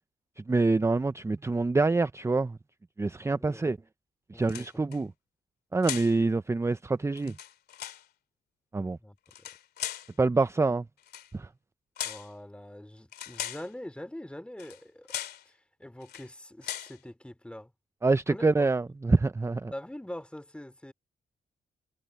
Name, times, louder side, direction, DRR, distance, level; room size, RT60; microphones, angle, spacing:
voice 1, 0.4-2.6 3.0-3.8 4.3-5.1 5.7-7.4 8.7-9.0 10.2-10.8 11.3-11.5 18.0-19.7, right 3 dB, 15° right, 0.6 m, -26 dB
voice 2, 3.2-3.7 4.3-4.7 9.0-9.5 12.0-15.1 15.4-17.7 18.3-18.7 19.7-20.9, left 1 dB, 5° left, 2.8 m, -44 dB
sound 1, 4.4-5.0 5.8-6.2 7.2-8.0 9.3-10.1 11.0-11.3 12.0-12.3 13.1-13.7 14.6-14.8 15.1-15.4 16.0-16.3 16.6-17.0, left 11 dB, 80° left, 2.6 m, -38 dB
supercardioid pair, 65°, 16 cm